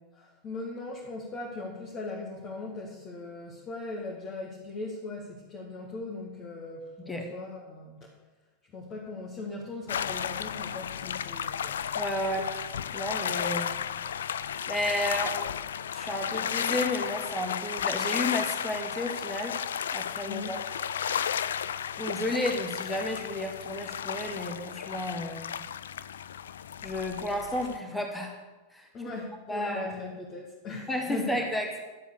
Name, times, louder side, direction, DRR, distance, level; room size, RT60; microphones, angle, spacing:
voice 1, 0.1-8.2 8.7-11.8 20.2-20.6 28.9-31.4, left 3 dB, 30° left, -3 dB, 2.1 m, -39 dB
sound 1, 9.9-27.8, left 8 dB, 65° left, 0.4 m, -33 dB
voice 2, 12.0-12.5 12.9-13.7 14.7-15.4 15.9-19.6 19.9-20.6 22.0-25.5 26.8-28.4 28.7-28.9 29.5-30.1 30.9-31.8, left 1 dB, 5° left, 2 dB, 1.9 m, -32 dB
13.0 x 7.7 x 6.6 m, 1.2 s
figure-of-eight pair, 90°, 0 cm